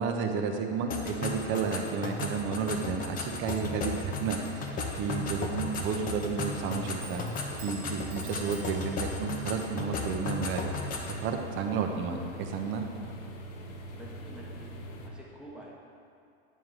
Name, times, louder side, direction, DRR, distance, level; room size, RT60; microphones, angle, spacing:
voice 1, 0.0-7.2 7.6-10.9 11.2-12.8, right 5 dB, 35° right, 4 dB, 0.7 m, -32 dB
sound 1, 0.9-11.2, left 3 dB, 25° left, 0.7 m, -36 dB
sound 2, 3.4-15.1, equal, 60° left, 1.0 m, -42 dB
Clock, 5.8-14.5, right 5 dB, 75° right, 1.0 m, -53 dB
voice 2, 13.9-14.7 15.0-15.7, right 1 dB, 5° right, -5 dB, 1.0 m, -48 dB
9.2 x 3.7 x 4.8 m, 2.5 s
supercardioid pair, 130°, 33 cm